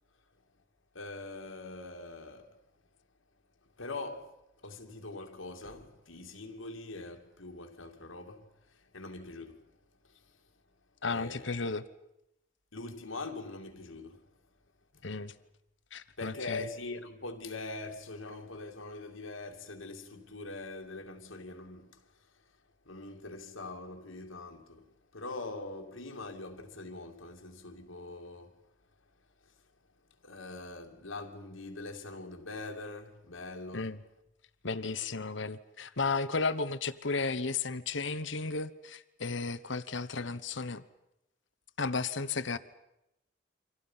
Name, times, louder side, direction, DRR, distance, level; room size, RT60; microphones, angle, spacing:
voice 1, 0.9-2.6 3.8-4.4 4.6-9.7 10.1-10.2 11.1-11.5 12.7-14.3 14.9-15.0 16.2-22.0 22.9-24.9 25.1-28.6 29.4-29.5 30.2-33.9 40.2-40.4, left 2 dB, 90° left, 2.6 m, -43 dB
voice 2, 11.0-11.8 15.0-15.3 15.9-16.7 33.7-34.0 34.6-40.8 41.8-42.6, left 4 dB, 70° left, 1.1 m, -34 dB
29.0 x 25.5 x 5.7 m
head